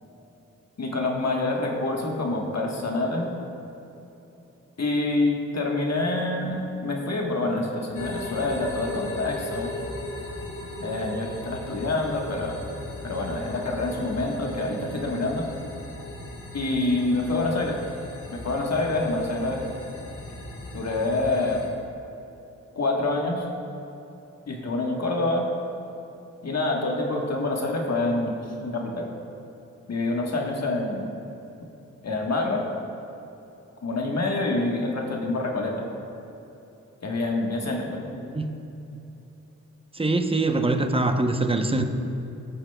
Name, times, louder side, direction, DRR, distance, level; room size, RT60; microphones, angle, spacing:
voice 1, 0.8-3.3 4.8-9.8 10.8-12.6 13.0-15.5 16.5-17.8 18.3-19.6 20.7-21.6 22.7-23.5 24.5-25.5 26.4-29.1 29.9-31.0 32.0-32.7 33.8-35.9 37.0-38.0, left 2 dB, 50° left, 0 dB, 1.4 m, -26 dB
sound 1, 7.9-21.7, left 2 dB, 70° left, 1.9 m, -38 dB
voice 2, 38.1-38.6 39.9-41.8, right 2 dB, 15° right, 6 dB, 0.7 m, -24 dB
15.0 x 7.2 x 2.3 m, 3.0 s
cardioid pair, 55°, 33 cm